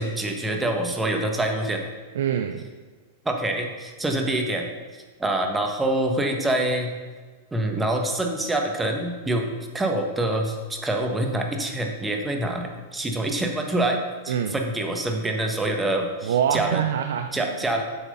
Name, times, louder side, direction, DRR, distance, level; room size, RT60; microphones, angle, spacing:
voice 1, 0.0-1.8 3.2-4.7 5.2-6.9 7.5-9.5 9.7-14.0 14.2-16.8 17.3-17.8, right 1 dB, 10° right, 3 dB, 1.3 m, -25 dB
voice 2, 2.1-2.7 14.3-14.6 16.2-17.7, right 8 dB, 75° right, 7 dB, 0.5 m, -25 dB
7.5 x 6.1 x 5.5 m, 1.4 s
hypercardioid pair, 110°, 0 cm